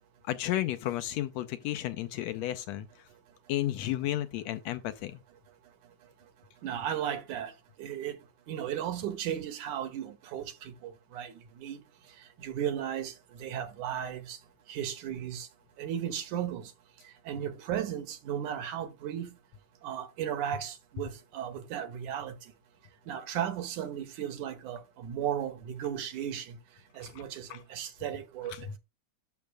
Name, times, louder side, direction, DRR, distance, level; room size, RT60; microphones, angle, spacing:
voice 1, 0.3-2.9 3.5-5.2 27.0-27.2 27.5-27.6 28.5-28.6, left 13 dB, 75° left, 1.7 m, -33 dB
voice 2, 6.6-7.5 7.8-8.2 8.5-11.8 12.4-14.4 14.7-15.5 15.8-16.7 17.3-19.3 19.8-22.4 23.1-26.6 27.0-28.8, right 9 dB, 85° right, 2.8 m, -35 dB
11.5 x 6.5 x 2.2 m
omnidirectional pair, 3.4 m